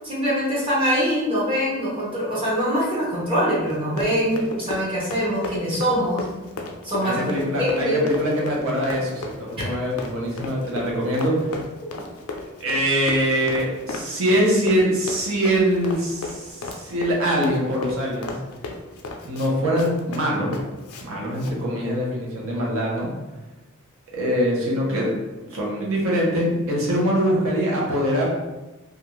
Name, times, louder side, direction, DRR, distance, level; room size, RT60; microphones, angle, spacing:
voice 1, 0.0-6.2 6.8-7.2 7.6-8.0, equal, 25° right, -8 dB, 0.7 m, -23 dB
Run, 3.7-21.1 21.3-21.6, left 3 dB, 85° left, 0.4 m, -35 dB
voice 2, 7.0-11.4 12.6-18.4 19.2-20.6 21.0-23.1 24.1-25.1 25.4-28.3, equal, 65° right, -3 dB, 0.7 m, -23 dB
2.4 x 2.3 x 3.0 m, 1.1 s
head